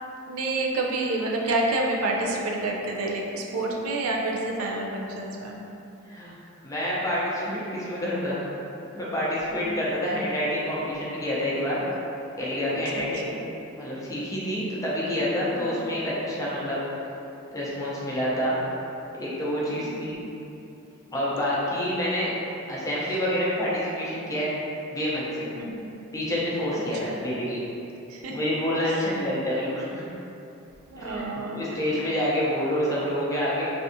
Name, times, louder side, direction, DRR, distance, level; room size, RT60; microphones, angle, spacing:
voice 1, 0.3-5.6 9.6-9.8 12.6-13.4 15.5-16.0 19.7-20.3 25.5-26.0 26.7-27.2 28.1-28.5 28.9-29.0 30.9-31.6 31.9-32.1, right 2 dB, 80° right, -1 dB, 0.4 m, -29 dB
voice 2, 6.6-8.4 8.9-11.8 12.4-13.3 13.7-16.8 17.5-18.6 19.2-20.2 21.1-22.3 22.7-24.5 24.9-25.5 26.1-27.6 28.3-30.1 31.0-31.2 31.5-33.6, equal, 15° left, -7 dB, 0.6 m, -27 dB
3.4 x 2.6 x 2.6 m, 2.9 s
head